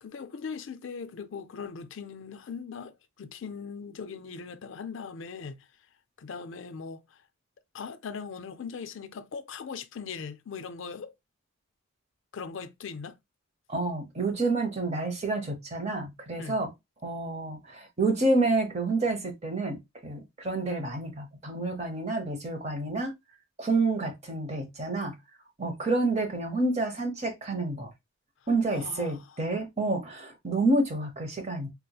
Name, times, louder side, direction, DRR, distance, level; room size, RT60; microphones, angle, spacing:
voice 1, 0.0-5.7 6.2-7.0 7.7-11.1 12.3-13.2 16.4-16.6 28.7-29.3, left 5 dB, 60° left, 0.4 m, -40 dB
voice 2, 13.7-16.7 17.0-23.1 23.6-25.2 25.6-27.9 28.5-31.7, right 2 dB, 30° right, 0.8 m, -29 dB
3.5 x 2.9 x 2.3 m
head